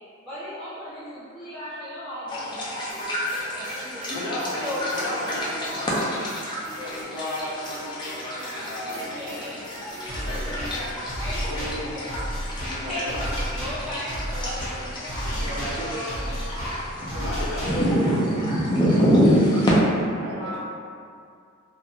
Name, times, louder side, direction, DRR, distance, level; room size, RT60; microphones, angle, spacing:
voice 1, 0.2-3.2 3.5-4.1 4.6-4.8 8.3-9.6 10.0-10.9 11.2-12.1 12.6-16.4 20.3-20.6, left 1 dB, ahead, -16 dB, 1.3 m, -37 dB
sound 1, 2.3-19.7, equal, 20° left, 0.5 m, -27 dB
sound 2, 2.9-10.9, right 1 dB, 25° right, 0.8 m, -45 dB
voice 2, 4.1-6.1 6.7-9.5 10.1-10.4 11.5-11.9 12.6-13.3 17.2-18.2 20.2-20.5, left 1 dB, 70° left, -6 dB, 0.6 m, -34 dB
sound 3, 10.1-18.1, equal, 50° left, 1.4 m, -32 dB
voice 3, 15.2-16.0 17.1-17.7 18.8-19.4 20.2-20.6, right 2 dB, 85° right, -3 dB, 0.5 m, -38 dB
2.4 x 2.3 x 2.8 m, 2.3 s
head